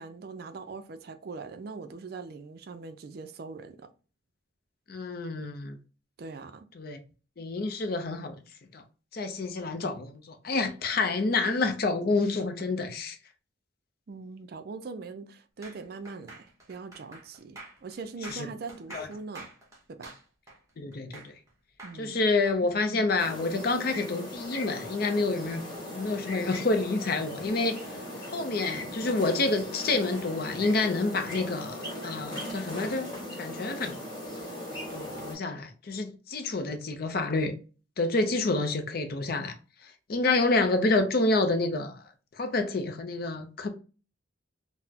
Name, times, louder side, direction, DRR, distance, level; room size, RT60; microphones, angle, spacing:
voice 1, 0.0-3.9 6.2-6.7 14.1-19.5 19.9-20.1 21.8-22.2, right 4 dB, 50° right, 0.4 m, -41 dB
voice 2, 4.9-5.8 6.8-7.0 7.4-8.4 8.7-8.8 9.1-13.2 18.3-18.5 18.9-19.1 20.8-21.3 22.0-27.8 28.3-33.1 33.4-34.0 34.9-37.5 38.0-39.6 39.8-42.0 42.3-43.7, left 3 dB, 50° left, 0.5 m, -28 dB
sound 1, 15.6-21.5 21.8-23.3, right 2 dB, 15° right, 1.0 m, -48 dB
sound 2, 23.2-35.3, left 1 dB, 20° left, 1.4 m, -38 dB
3.9 x 2.1 x 2.7 m
head